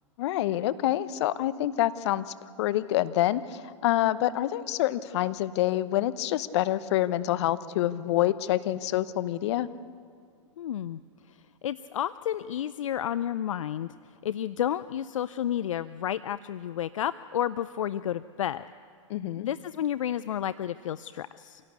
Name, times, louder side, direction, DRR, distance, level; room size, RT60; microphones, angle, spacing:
voice 1, 0.2-2.2 2.6-9.7 19.1-19.5, left 14 dB, 55° left, 14 dB, 1.0 m, -27 dB
voice 2, 10.6-11.0 11.3-13.9 14.2-18.6 19.4-21.6, left 10 dB, 75° left, 15 dB, 0.5 m, -31 dB
26.5 x 17.0 x 8.3 m, 2.2 s
hypercardioid pair, 110°, 17 cm